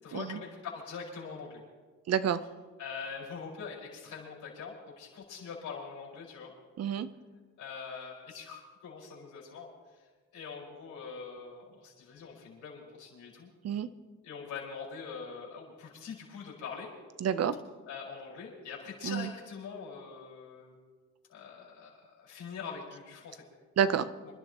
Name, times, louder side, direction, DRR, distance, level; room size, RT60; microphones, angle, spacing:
voice 1, 0.0-1.6 2.8-6.5 7.6-9.7 10.3-13.5 14.2-16.9 17.9-20.8 21.3-23.4, left 5 dB, 75° left, -3 dB, 5.4 m, -43 dB
voice 2, 2.1-2.4 6.8-7.1 13.6-13.9 17.2-17.5 19.0-19.3 23.8-24.1, right 8 dB, 55° right, 13 dB, 0.9 m, -28 dB
27.5 x 12.0 x 3.1 m, 1.4 s
cardioid pair, 90°, 30 cm